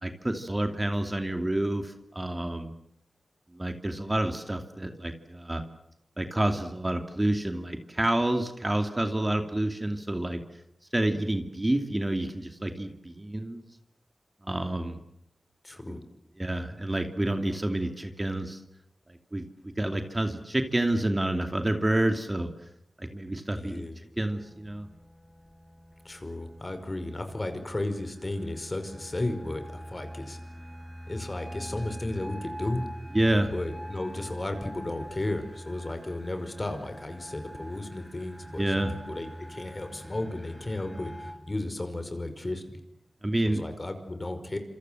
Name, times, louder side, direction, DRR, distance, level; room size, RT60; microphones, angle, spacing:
voice 1, 0.0-2.7 3.5-5.6 6.2-10.4 10.9-13.6 14.4-15.0 15.8-16.1 16.4-18.6 19.1-19.4 19.8-22.5 23.0-23.9 24.2-24.9 33.1-33.5 38.6-38.9 43.2-43.6, right 1 dB, 25° right, 6 dB, 2.6 m, -28 dB
voice 2, 15.6-16.0 23.5-24.0 26.0-30.4 31.1-32.8 33.5-42.8 43.4-44.6, left 2 dB, 35° left, 8 dB, 5.3 m, -34 dB
sound 1, 24.2-41.3, equal, 5° right, 5.7 m, -44 dB
27.0 x 26.5 x 7.8 m, 0.81 s
cardioid pair, 55°, 0 cm